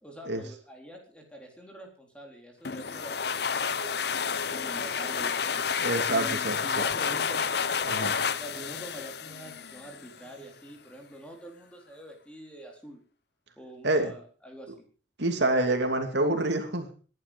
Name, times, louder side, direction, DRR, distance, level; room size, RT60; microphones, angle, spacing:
voice 1, 0.0-4.0 4.5-5.5 6.1-7.4 8.3-13.0 13.6-14.9, right 1 dB, 5° left, 1 dB, 4.0 m, -45 dB
sound 1, 2.6-10.1, left 6 dB, 60° left, 0.7 m, -30 dB
voice 2, 5.8-6.9 7.8-8.1 13.8-14.1 15.2-16.9, right 2 dB, 70° right, 5 dB, 2.8 m, -27 dB
19.5 x 11.0 x 5.3 m, 0.40 s
head